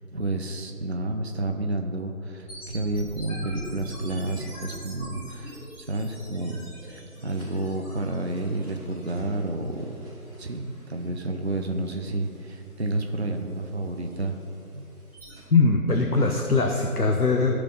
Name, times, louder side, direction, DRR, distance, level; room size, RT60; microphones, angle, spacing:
voice 1, 0.1-10.0 10.4-14.4 14.7-14.9, right 2 dB, 45° right, 4 dB, 0.7 m, -30 dB
sound 1, 2.5-15.4, right 1 dB, 10° left, 2.2 m, -45 dB
voice 2, 15.5-17.6, left 3 dB, 75° left, 3 dB, 1.0 m, -21 dB
14.5 x 5.0 x 5.3 m, 2.8 s
figure-of-eight pair, 160°, 46 cm